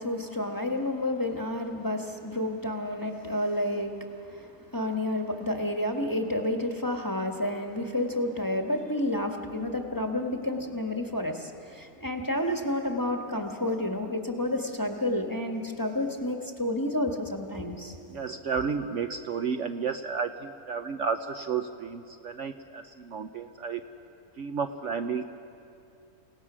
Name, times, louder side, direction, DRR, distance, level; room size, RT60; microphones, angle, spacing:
voice 1, 0.0-18.0, left 1 dB, 15° left, 3 dB, 1.2 m, -30 dB
voice 2, 18.1-23.8 24.4-25.2, right 6 dB, 60° right, 7 dB, 0.9 m, -32 dB
29.5 x 17.5 x 6.2 m, 2.7 s
omnidirectional pair, 1.6 m